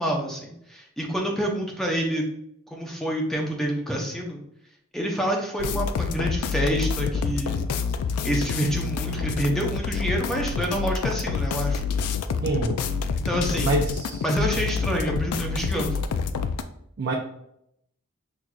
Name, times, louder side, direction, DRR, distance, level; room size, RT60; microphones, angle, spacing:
voice 1, 0.0-2.3 2.7-4.4 4.9-7.7 8.2-11.8 13.2-13.7 14.2-16.0, equal, ahead, -1 dB, 0.6 m, -27 dB
nasty D'n'B loop, 5.6-16.6, left 5 dB, 90° left, 0.3 m, -27 dB
voice 2, 12.4-12.8 13.6-14.2 17.0-17.1, right 2 dB, 50° right, 0 dB, 0.4 m, -26 dB
5.8 x 2.5 x 2.3 m, 0.75 s
head